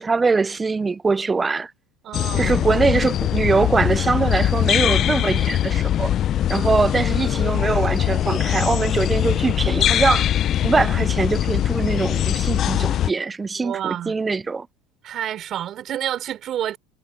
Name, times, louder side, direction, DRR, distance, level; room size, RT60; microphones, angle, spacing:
voice 1, 0.0-1.7 2.4-6.1 6.5-10.2 10.6-14.7, right 4 dB, 20° right, 0.4 m, -22 dB
voice 2, 2.0-2.7 6.5-6.7 13.5-14.1 15.0-16.8, right 11 dB, 45° right, 4.3 m, -29 dB
sound 1, 2.1-13.1, left 11 dB, 45° left, 0.4 m, -21 dB
supercardioid pair, 100°, 0 cm